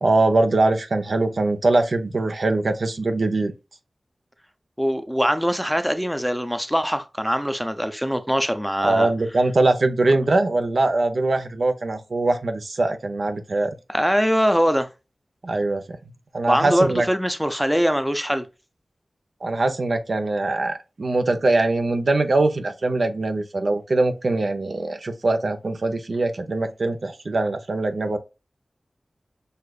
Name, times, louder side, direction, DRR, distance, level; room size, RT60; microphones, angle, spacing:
voice 1, 0.0-3.5 8.8-13.7 15.4-15.8 16.3-17.0 19.4-28.2, right 2 dB, 70° right, 0.8 m, -22 dB
voice 2, 4.8-9.1 13.9-14.9 16.5-18.5, equal, ahead, 0.6 m, -22 dB
6.6 x 2.5 x 2.4 m
cardioid pair, 50°, 0 cm